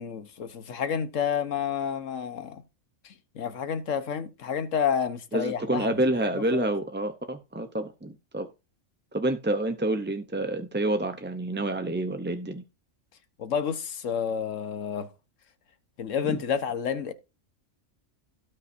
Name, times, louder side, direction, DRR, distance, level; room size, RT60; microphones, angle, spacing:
voice 1, 0.0-2.6 3.0-6.7 13.4-15.1 16.0-17.1, left 7 dB, 80° left, 1.4 m, -30 dB
voice 2, 5.3-8.5 9.1-12.6 16.2-16.4, right 1 dB, 15° right, 0.5 m, -28 dB
17.0 x 5.6 x 2.6 m
omnidirectional pair, 1.3 m